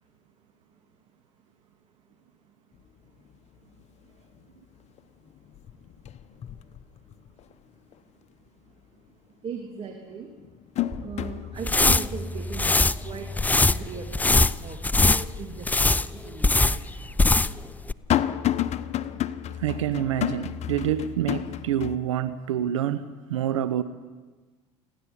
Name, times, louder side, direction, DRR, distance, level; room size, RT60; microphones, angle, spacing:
sound 1, 2.8-2.9 3.3-3.8 4.2-5.0 5.3-7.5 7.9-8.0 9.5-9.6 10.1-15.2 15.6-15.7 16.6-22.0, left 12 dB, 45° left, 1.0 m, -32 dB
voice 1, 9.4-10.3 11.0-13.3 13.6-16.8 17.2-17.4, right 5 dB, 35° right, 2.9 m, -38 dB
sound 2, 10.9-14.9, equal, 5° right, 7.4 m, -49 dB
sound 3, 11.6-17.6 17.9-18.0, left 2 dB, 10° left, 0.6 m, -22 dB
voice 2, 19.6-23.8, right 10 dB, 85° right, 0.9 m, -27 dB
29.0 x 11.5 x 9.9 m
hypercardioid pair, 80°, 16 cm